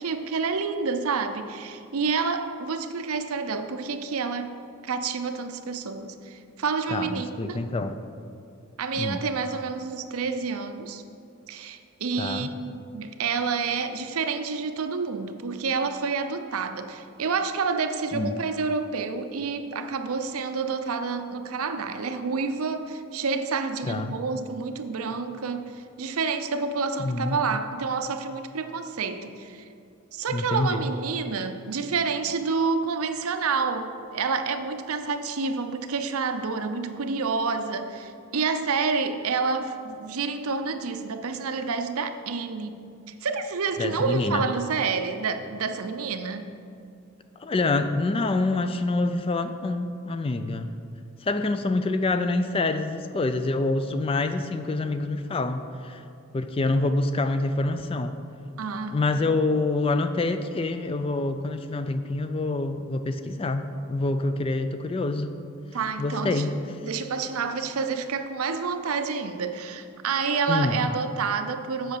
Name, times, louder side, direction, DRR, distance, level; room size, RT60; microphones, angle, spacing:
voice 1, 0.0-7.6 8.8-11.0 11.5-29.7 30.1-42.8 43.1-46.5 58.6-59.0 65.7-66.4 66.8-72.0, right 5 dB, 75° right, 8 dB, 0.6 m, -29 dB
voice 2, 6.9-8.0 9.0-9.2 12.2-12.5 18.1-18.3 23.8-24.2 27.0-27.4 30.3-30.8 43.8-44.4 47.4-50.7 51.2-56.0 56.3-58.2 58.9-65.4 66.0-66.5 70.5-70.9, left 2 dB, 25° left, 9 dB, 0.3 m, -26 dB
7.9 x 5.8 x 6.7 m, 2.5 s
head